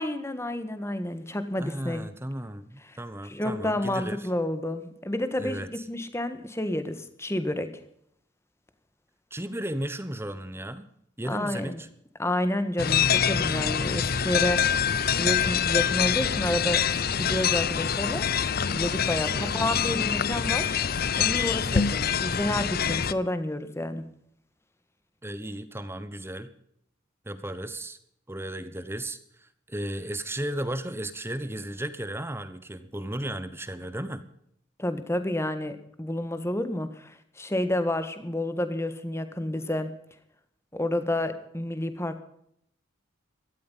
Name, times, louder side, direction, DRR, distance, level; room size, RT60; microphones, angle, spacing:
voice 1, 0.0-2.0 2.9-3.0 3.2-7.7 11.2-11.8 12.2-14.6 15.2-16.8 17.2-18.3 18.7-20.8 21.2-24.0 34.8-39.9 40.7-42.2, left 1 dB, 15° left, 10 dB, 1.6 m, -30 dB
voice 2, 1.6-4.3 5.4-5.7 9.3-10.9 11.2-11.9 19.3-20.2 25.2-26.5 27.2-28.0 28.3-34.2, right 1 dB, 10° right, 12 dB, 1.0 m, -35 dB
sound 1, 12.8-23.1, left 7 dB, 50° left, 0.7 m, -25 dB
17.0 x 13.0 x 5.6 m, 0.71 s
head